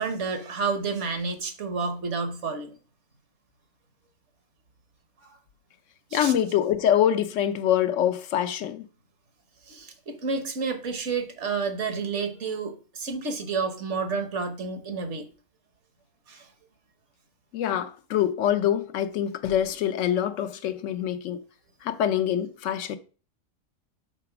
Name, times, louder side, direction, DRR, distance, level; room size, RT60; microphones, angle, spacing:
voice 1, 0.0-2.7 6.1-6.3 9.7-15.3 16.3-16.5, right 4 dB, 60° right, 1.3 m, -30 dB
voice 2, 6.1-8.9 17.5-21.4 21.8-23.0, left 10 dB, 75° left, 0.9 m, -25 dB
5.9 x 3.9 x 5.7 m
omnidirectional pair, 1.4 m